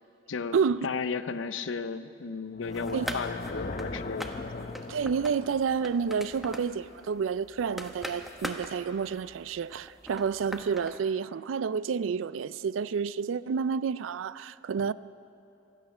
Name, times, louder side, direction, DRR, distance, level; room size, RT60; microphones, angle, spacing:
voice 1, 0.8-4.3 4.5-4.6, left 5 dB, 80° left, 0.6 m, -34 dB
sound 1, 2.5-7.6, left 3 dB, 40° left, 0.6 m, -39 dB
sound 2, 2.6-11.0, equal, ahead, 0.8 m, -42 dB
voice 2, 4.9-14.9, right 6 dB, 85° right, 0.4 m, -29 dB
26.5 x 9.0 x 6.1 m
head